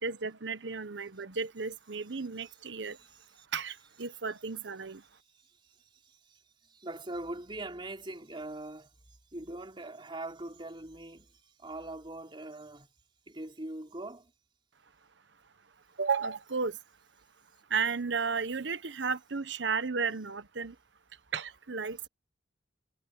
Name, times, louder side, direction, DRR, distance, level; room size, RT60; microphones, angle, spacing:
voice 1, 0.0-3.0 3.5-5.0 16.0-16.8 17.7-20.7 21.3-22.1, right 5 dB, 65° right, 1.0 m, -33 dB
voice 2, 2.9-3.5 5.1-12.9 13.3-14.3, right 2 dB, 25° right, 4.1 m, -43 dB
head